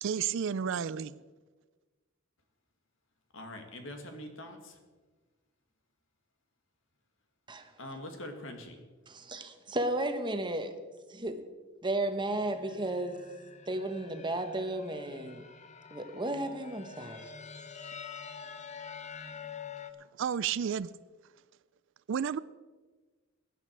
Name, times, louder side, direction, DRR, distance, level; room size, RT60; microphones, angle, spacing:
voice 1, 0.0-1.2 20.2-20.9 22.1-22.4, right 7 dB, 65° right, 18 dB, 0.4 m, -31 dB
voice 2, 3.3-4.7 7.8-8.8, left 1 dB, 65° left, 5 dB, 2.1 m, -43 dB
voice 3, 9.1-10.8 11.1-11.4 11.8-13.2 13.7-15.4 15.9-17.3, right 1 dB, 20° right, 7 dB, 1.1 m, -34 dB
sound 1, 12.2-19.9, left 6 dB, 35° left, 0.8 m, -47 dB
16.0 x 11.0 x 4.7 m, 1.3 s
head